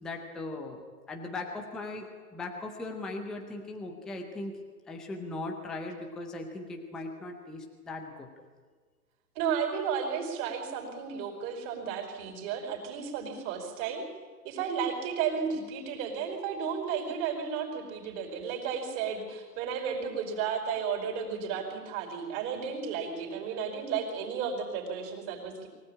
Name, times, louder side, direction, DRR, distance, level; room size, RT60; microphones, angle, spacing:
voice 1, 0.0-4.5 4.9-8.3, left 2 dB, ahead, 2 dB, 0.5 m, -39 dB
voice 2, 9.3-14.1 14.4-25.7, right 6 dB, 30° right, 2 dB, 5.0 m, -33 dB
23.5 x 16.5 x 8.7 m, 1.5 s
hypercardioid pair, 145°, 49 cm